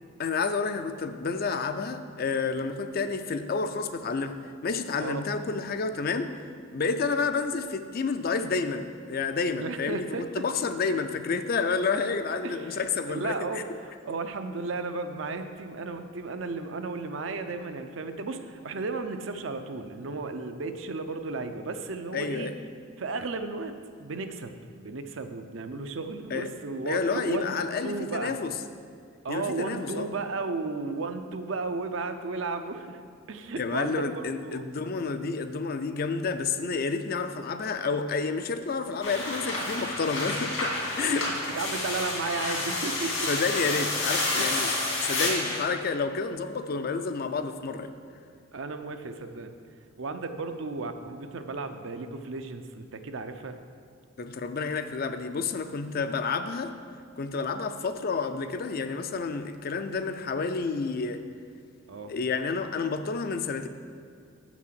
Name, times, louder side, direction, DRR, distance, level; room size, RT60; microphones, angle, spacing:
voice 1, 0.2-4.4 4.6-6.3 6.7-13.6 22.1-22.6 26.3-26.5 26.9-28.5 29.3-30.0 33.6-41.2 43.3-44.7 45.0-47.9 54.2-56.8 57.2-61.2 62.1-63.7, left 4 dB, 45° left, 9 dB, 0.4 m, -30 dB
voice 2, 9.6-10.3 12.4-22.5 23.0-23.7 24.0-27.5 27.8-28.4 29.2-33.0 33.3-34.7 41.0-41.2 41.5-43.3 44.4-44.5 48.5-49.5 50.0-53.6 56.0-56.1 61.9-62.1, right 3 dB, 70° right, 7 dB, 0.6 m, -34 dB
sound 1, 39.0-45.6, left 2 dB, 80° left, 2.4 m, -29 dB
6.6 x 6.1 x 7.4 m, 2.2 s
head